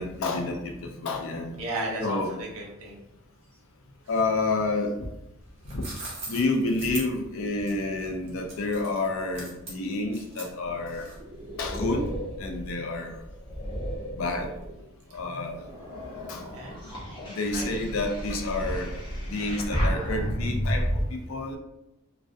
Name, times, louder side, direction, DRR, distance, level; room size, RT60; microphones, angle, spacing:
voice 1, 0.0-1.5 2.0-2.3 4.1-4.9 5.7-5.8 6.3-11.1 11.6-12.1 12.4-13.2 14.1-14.5 15.1-15.6 16.2-16.9 17.3-21.6, left 2 dB, 65° left, 2 dB, 0.4 m, -29 dB
voice 2, 1.5-3.0 16.5-16.9 17.5-17.7, right 1 dB, 80° right, -2 dB, 0.7 m, -34 dB
sound 1, 5.4-11.4, right 2 dB, 25° right, 0.5 m, -41 dB
sound 2, 10.7-14.9 15.4-21.0, equal, 20° left, 0.6 m, -32 dB
2.3 x 2.1 x 2.5 m, 0.90 s
head